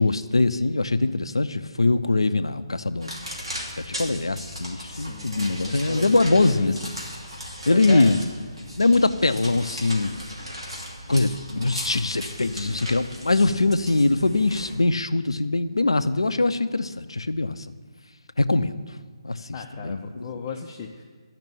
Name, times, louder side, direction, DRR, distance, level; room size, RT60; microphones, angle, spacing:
voice 1, 0.0-3.1 3.8-6.9 7.7-8.2 8.8-10.2 11.1-17.6 18.4-18.8 19.2-19.4 19.7-20.2, left 3 dB, 70° left, 12 dB, 0.6 m, -22 dB
sound 1, 3.0-14.7, equal, 75° right, 2.7 m, -37 dB
voice 2, 4.8-6.7 7.2-8.2 19.5-21.0, left 5 dB, 25° left, 0 dB, 0.7 m, -36 dB
12.0 x 5.9 x 8.7 m, 1.5 s
figure-of-eight pair, 140°, 3 cm